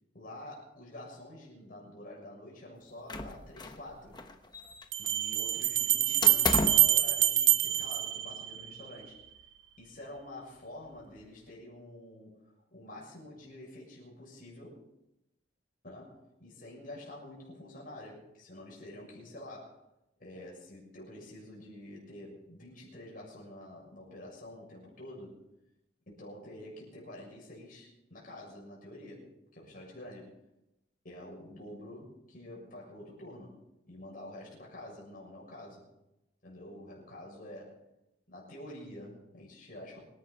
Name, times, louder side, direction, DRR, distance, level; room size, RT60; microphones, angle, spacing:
voice 1, 0.1-4.2 5.0-9.2 9.8-14.8 15.8-19.8 20.2-25.4 26.1-30.4 31.0-33.6 33.9-35.9 36.4-37.8 38.3-40.0, left 1 dB, 45° left, -3 dB, 6.8 m, -48 dB
sound 1, 3.1-3.9 4.1-5.1 6.2-7.0, left 3 dB, 20° left, 1.0 m, -33 dB
Bell, 3.3-3.4 4.9-8.8, right 13 dB, 60° right, 1.0 m, -26 dB
26.0 x 11.5 x 4.1 m, 0.89 s
head